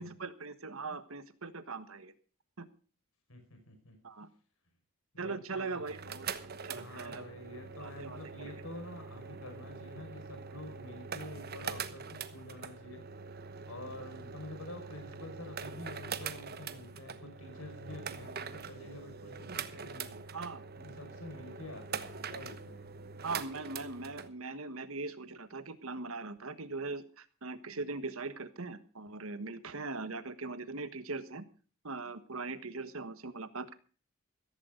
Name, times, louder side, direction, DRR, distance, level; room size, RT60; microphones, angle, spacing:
voice 1, 0.0-2.1 2.6-2.7 4.0-4.3 5.2-6.3 6.6-7.3 7.8-8.5 20.3-20.6 23.2-31.4 31.8-33.8, right 3 dB, 70° right, 12 dB, 1.4 m, -40 dB
voice 2, 3.3-4.0 5.1-5.8 6.7-20.2 20.8-22.9, left 1 dB, 75° left, 5 dB, 5.5 m, -48 dB
sound 1, 5.8-24.3, right 5 dB, 45° right, 1.1 m, -43 dB
15.5 x 14.5 x 3.8 m, 0.39 s
head